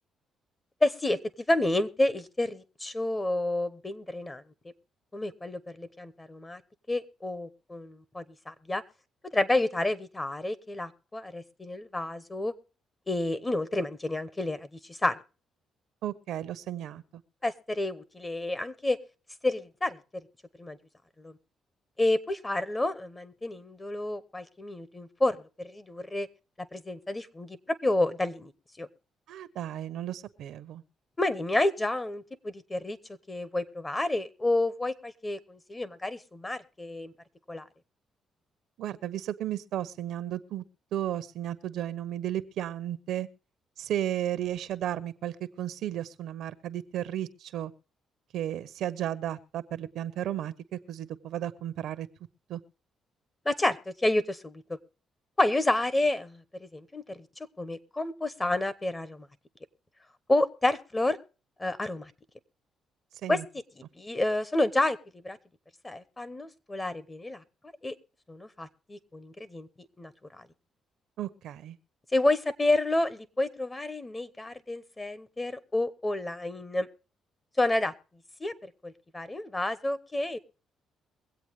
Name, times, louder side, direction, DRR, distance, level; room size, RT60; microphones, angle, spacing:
voice 1, 0.8-1.2 1.5-4.4 5.1-6.6 6.9-8.8 9.3-12.5 13.1-15.2 17.4-19.0 19.4-20.0 20.6-20.8 21.2-21.3 22.0-26.3 26.7-28.5 28.8-28.9 31.2-33.0 33.3-37.1 37.5-37.6 53.4-54.6 55.4-57.2 57.6-59.3 60.3-61.2 61.6-62.1 63.3-63.4 64.0-65.0 65.2-65.4 65.8-67.4 67.8-67.9 68.3-70.1 70.4-70.5 72.1-76.9 77.6-77.9 78.4-78.5 78.8-80.4, left 2 dB, 20° left, 16 dB, 1.0 m, -29 dB
voice 2, 16.0-17.0 29.3-30.8 38.8-40.6 40.9-43.3 43.8-47.7 48.3-52.1 52.5-52.6 63.2-63.5 71.2-71.8, right 11 dB, 80° right, 15 dB, 0.8 m, -34 dB
23.0 x 8.2 x 3.2 m, 0.35 s
cardioid pair, 90°, 0 cm